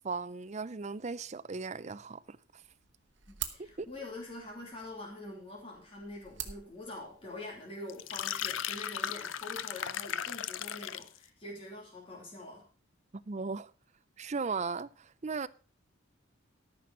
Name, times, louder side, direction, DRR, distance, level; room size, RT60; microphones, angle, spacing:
voice 1, 0.0-2.4 3.6-3.9 13.3-13.7 14.2-15.5, right 4 dB, 35° right, 0.5 m, -37 dB
sound 1, 2.6-7.6, right 10 dB, 60° right, 1.3 m, -46 dB
voice 2, 3.3-12.6, left 2 dB, 30° left, 3.1 m, -45 dB
sound 2, 7.9-11.2, left 10 dB, 70° left, 0.5 m, -36 dB
13.5 x 6.0 x 6.3 m
head